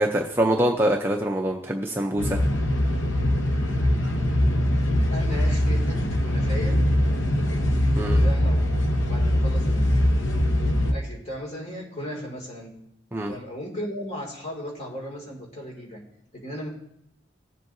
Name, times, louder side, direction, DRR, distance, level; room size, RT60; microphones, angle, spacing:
voice 1, 0.0-2.4 7.9-8.2 13.1-13.3, right 1 dB, 10° right, 1 dB, 0.5 m, -24 dB
sound 1, 2.2-10.9, left 1 dB, 85° left, 0.9 m, -22 dB
voice 2, 5.1-6.9 8.1-8.7 9.0-10.2 10.6-12.8 13.3-16.0 16.3-16.7, equal, 35° left, -1 dB, 2.3 m, -36 dB
18.5 x 7.5 x 2.7 m, 0.79 s
head